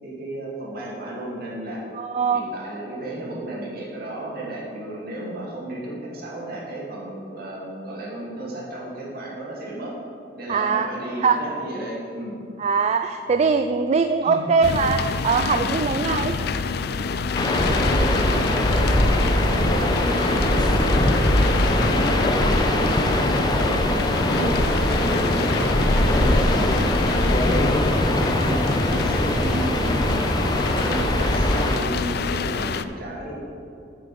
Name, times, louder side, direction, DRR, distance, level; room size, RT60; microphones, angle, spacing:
voice 1, 0.0-1.9 2.3-9.9 10.4-12.4 14.2-14.4 17.7-23.8 24.3-24.5 24.8-27.5 28.4-30.3 30.8-33.4, right 1 dB, 60° right, -4 dB, 2.6 m, -33 dB
voice 2, 2.0-2.4 10.5-10.9 11.2-11.4 12.6-16.3 24.4-24.5 30.9-31.1, right 5 dB, 40° right, 8 dB, 0.3 m, -22 dB
sound 1, 14.6-32.8, left 5 dB, 65° left, 0.4 m, -28 dB
sound 2, 17.3-31.8, left 1 dB, 25° left, 0.8 m, -21 dB
9.1 x 7.6 x 5.3 m, 2.6 s
head